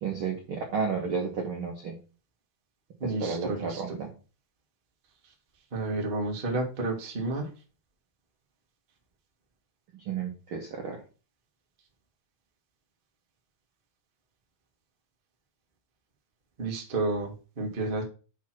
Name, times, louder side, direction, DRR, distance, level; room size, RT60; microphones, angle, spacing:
voice 1, 0.0-1.9 3.0-4.1 9.9-11.0, right 5 dB, 70° right, 1 dB, 1.3 m, -32 dB
voice 2, 3.0-3.8 5.7-7.4 16.6-18.0, right 2 dB, 40° right, 1 dB, 0.7 m, -31 dB
5.6 x 4.8 x 5.8 m, 0.34 s
omnidirectional pair, 4.2 m